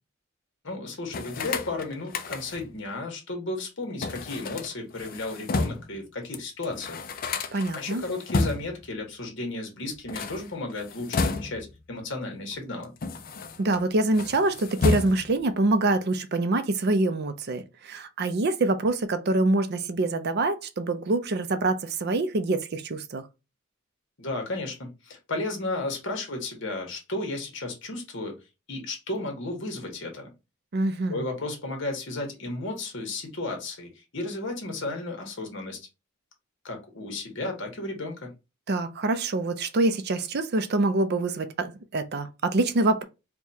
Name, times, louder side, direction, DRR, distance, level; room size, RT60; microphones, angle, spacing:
voice 1, 0.6-7.0 7.7-12.9 24.2-28.4 28.7-30.3 31.1-35.8 36.6-38.3, left 2 dB, 65° left, 1.3 m, -34 dB
sound 1, 1.1-2.7 4.0-6.0 6.3-6.4 6.6-8.9 9.9-11.8 12.5-13.8 14.1-15.5, left 3 dB, 45° left, 0.5 m, -31 dB
voice 2, 7.5-8.0 13.6-23.3 30.7-31.2 38.7-43.0, right 2 dB, 50° right, 0.5 m, -25 dB
4.5 x 2.3 x 2.7 m
head